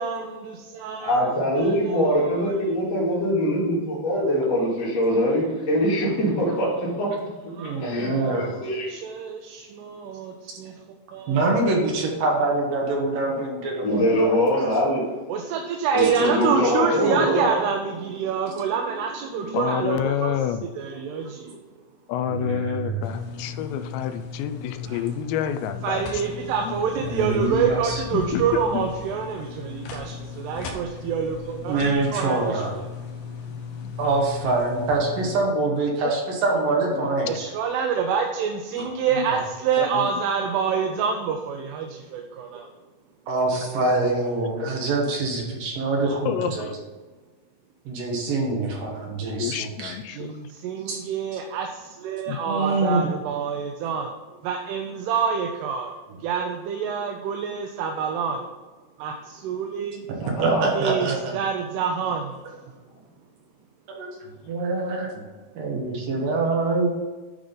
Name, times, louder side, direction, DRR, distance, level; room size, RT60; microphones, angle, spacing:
voice 1, 0.0-1.2 1.6-2.6 7.6-10.8 11.1-11.6 13.3-13.4 15.3-20.3 20.6-21.6 25.8-32.6 37.3-42.7 50.1-54.1 54.4-55.9 56.2-58.5 59.0-60.1 60.6-61.1 61.3-62.3, right 6 dB, 80° right, 3 dB, 2.7 m, -27 dB
voice 2, 1.0-7.1 7.6-8.9 13.8-15.1 15.9-17.6 60.2-60.6, equal, 40° left, -7 dB, 3.2 m, -23 dB
voice 3, 7.5-8.5 11.3-14.7 22.3-23.0 24.9-25.0 26.9-28.0 31.7-32.7 34.0-37.3 38.8-38.9 43.3-46.7 47.9-49.9 50.9-51.0 52.5-53.1 60.4-61.3 63.9-64.1 64.4-65.2 65.5-66.9, right 3 dB, 60° right, -1 dB, 2.8 m, -25 dB
voice 4, 19.5-20.6 22.1-26.8 28.1-28.9 33.8-33.9 36.0-36.2 36.9-37.1 38.8-38.9 39.2-39.3 39.8-40.1 43.6-43.7 44.0-44.1 44.4-44.7 46.3-46.7 49.4-50.3 52.3-52.4, left 9 dB, 85° left, 10 dB, 2.9 m, -29 dB
sound 1, 23.0-35.4, left 5 dB, 70° left, 2.3 m, -37 dB
10.5 x 4.9 x 3.8 m, 1.3 s
omnidirectional pair, 5.0 m